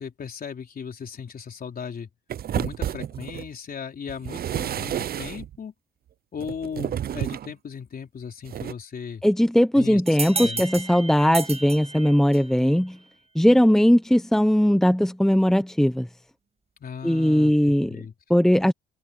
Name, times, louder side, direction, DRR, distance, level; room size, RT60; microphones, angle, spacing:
voice 1, 0.0-2.1 2.5-5.7 6.3-9.2 9.7-10.0 10.3-10.6 16.8-18.1, left 6 dB, 50° left, 4.1 m, -37 dB
sound 1, 2.3-3.5 4.1-5.6 6.4-7.5 8.5-8.7, right 10 dB, 50° right, 0.6 m, -30 dB
voice 2, 9.2-13.0 13.3-16.1 17.0-18.0 18.3-18.7, equal, ahead, 1.1 m, -19 dB
sound 2, 10.1-12.6, right 4 dB, 30° right, 1.2 m, -32 dB
cardioid pair, 90°, 20 cm